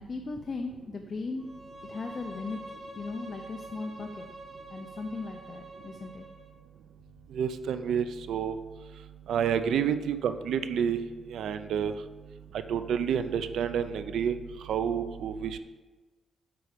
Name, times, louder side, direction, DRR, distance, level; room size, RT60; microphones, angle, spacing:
voice 1, 0.0-1.5 1.9-2.6 3.0-4.3 4.7-6.3, left 3 dB, 30° left, 3 dB, 0.5 m, -37 dB
Bowed string instrument, 1.4-6.5, right 1 dB, 25° right, 0.8 m, -46 dB
voice 2, 7.3-8.6 9.3-11.0 11.3-11.9 12.7-14.4 14.7-15.6, right 8 dB, 90° right, 11 dB, 0.4 m, -29 dB
8.4 x 6.1 x 5.0 m, 1.3 s
wide cardioid pair, 175°, 0 cm